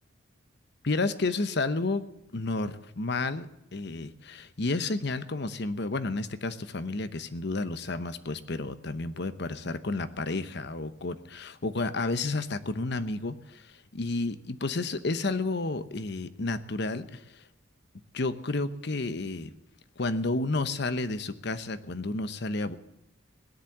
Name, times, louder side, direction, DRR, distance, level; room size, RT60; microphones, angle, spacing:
voice 1, 0.8-2.0 2.3-3.5 3.7-17.4 18.1-19.5 20.0-22.7, left 3 dB, 55° left, 12 dB, 0.9 m, -31 dB
17.0 x 10.5 x 7.3 m, 0.87 s
head